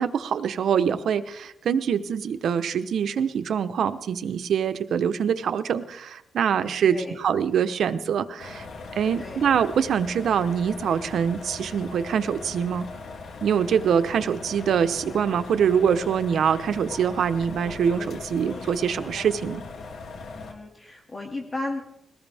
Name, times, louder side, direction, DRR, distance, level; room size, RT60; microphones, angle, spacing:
voice 1, 0.0-8.7 8.9-12.9 13.4-19.6, right 7 dB, 80° right, 11 dB, 1.0 m, -24 dB
voice 2, 6.8-7.2 9.2-9.5 20.4-21.8, left 2 dB, 25° left, 1 dB, 2.4 m, -34 dB
sound 1, 8.4-20.5, left 4 dB, 80° left, 2.7 m, -39 dB
22.0 x 18.5 x 3.6 m, 0.82 s
wide cardioid pair, 130°, 0 cm